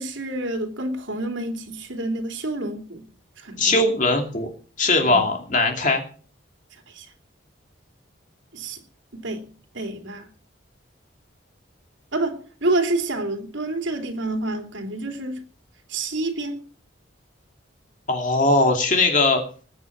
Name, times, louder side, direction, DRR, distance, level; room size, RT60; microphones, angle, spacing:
voice 1, 0.0-3.0 3.4-3.8 5.1-5.3 6.9-7.1 8.5-8.8 9.1-9.4 9.7-10.3 12.1-15.4 15.9-16.6, right 2 dB, 75° right, 3.2 m, -28 dB
voice 2, 3.6-4.5 4.8-6.0 18.1-19.4, left 2 dB, 40° left, 2.7 m, -20 dB
20.0 x 9.3 x 6.0 m
head